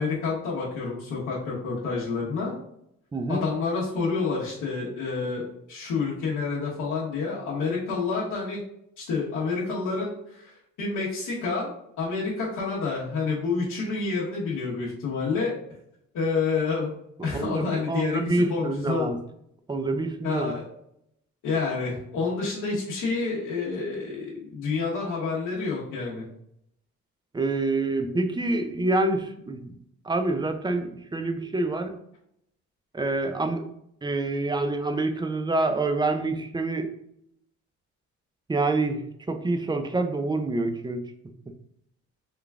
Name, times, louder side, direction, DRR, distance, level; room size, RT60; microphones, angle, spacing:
voice 1, 0.0-2.5 3.3-8.6 9.0-10.5 10.8-15.5 16.1-16.9 17.2-19.1 20.2-20.6 21.4-26.2, left 4 dB, 85° left, -6 dB, 1.3 m, -28 dB
voice 2, 3.1-3.5 17.3-19.2 19.7-20.5 27.3-29.7 30.0-32.0 32.9-33.6 34.0-36.9 38.5-41.0, right 2 dB, 15° right, 7 dB, 0.4 m, -27 dB
3.8 x 2.3 x 3.5 m, 0.73 s
cardioid pair, 90°, 30 cm